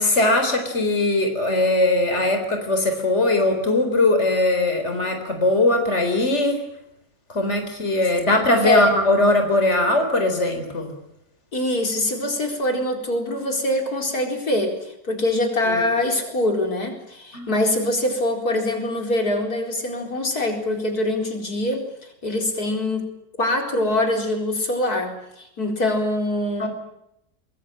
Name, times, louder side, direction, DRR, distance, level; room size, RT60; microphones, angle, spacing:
voice 1, 0.0-6.6 7.3-10.9 15.7-15.8 17.3-17.5 26.6-26.7, left 2 dB, 50° left, 6 dB, 4.3 m, -20 dB
voice 2, 11.5-21.9 22.2-23.1 23.4-26.7, left 1 dB, 90° left, 3 dB, 5.0 m, -24 dB
24.0 x 22.0 x 8.9 m, 0.80 s
omnidirectional pair, 1.6 m